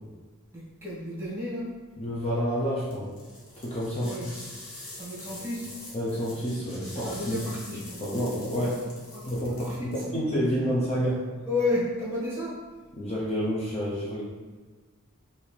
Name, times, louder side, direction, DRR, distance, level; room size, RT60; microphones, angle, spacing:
voice 1, 0.5-1.7 4.0-4.3 5.0-5.7 7.0-8.0 8.6-8.8 9.1-10.2 11.5-12.6, left 2 dB, 10° right, -7 dB, 1.4 m, -32 dB
voice 2, 2.0-3.1 3.6-4.2 5.9-7.4 8.0-8.8 9.3-11.3 13.0-14.2, equal, 30° left, -6 dB, 0.7 m, -29 dB
sound 1, 2.9-10.1, left 2 dB, 75° left, 1.2 m, -44 dB
5.3 x 2.7 x 3.3 m, 1.4 s
head